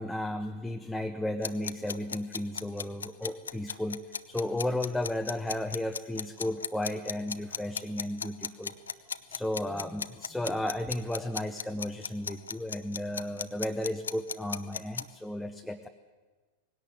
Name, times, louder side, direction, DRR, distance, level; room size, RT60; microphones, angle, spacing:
voice 1, 0.0-4.0 4.3-8.8 9.3-15.9, left 1 dB, 5° left, 5 dB, 0.8 m, -34 dB
sound 1, 1.4-15.1, left 6 dB, 70° left, 0.6 m, -36 dB
19.0 x 17.0 x 8.3 m, 1.3 s
figure-of-eight pair, 90°, 0 cm